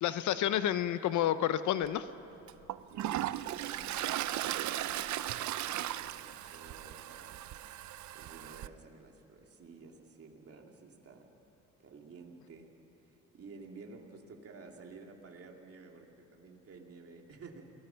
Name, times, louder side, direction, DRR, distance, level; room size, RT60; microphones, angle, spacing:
voice 1, 0.0-2.1, left 11 dB, 75° left, 13 dB, 0.8 m, -30 dB
Toilet flush, 1.8-1.9 2.5-8.7, right 13 dB, 70° right, 0.6 m, -37 dB
voice 2, 2.9-7.5 8.1-11.3 11.8-12.7 13.0-17.6, right 4 dB, 50° right, 2 dB, 2.6 m, -52 dB
28.5 x 18.0 x 5.8 m, 2.9 s
cardioid pair, 90°, 30 cm